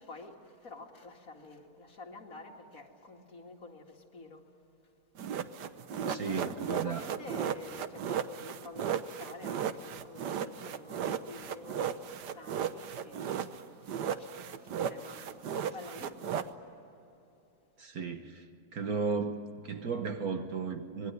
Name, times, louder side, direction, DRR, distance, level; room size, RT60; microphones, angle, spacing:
voice 1, 0.0-4.6 5.9-13.9 14.1-16.5, left 3 dB, 55° left, 2.7 m, -49 dB
sound 1, 5.2-13.6 13.9-16.5, right 8 dB, 85° right, 1.5 m, -35 dB
voice 2, 6.1-7.0 17.8-18.4 18.7-21.1, right 5 dB, 65° right, 1.7 m, -34 dB
26.0 x 21.0 x 9.4 m
omnidirectional pair, 1.8 m